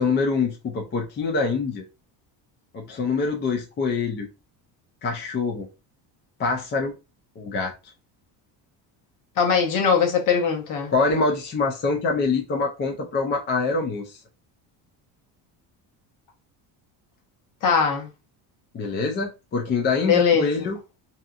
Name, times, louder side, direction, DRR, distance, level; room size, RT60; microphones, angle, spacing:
voice 1, 0.0-1.8 2.7-4.3 5.0-5.7 6.4-6.9 7.4-7.7 10.9-14.2 18.7-20.8, left 4 dB, 25° left, 0.3 m, -25 dB
voice 2, 9.4-10.9 17.6-18.1 20.0-20.7, left 6 dB, 45° left, 0.8 m, -21 dB
2.7 x 2.5 x 2.3 m
cardioid pair, 135°, 45 cm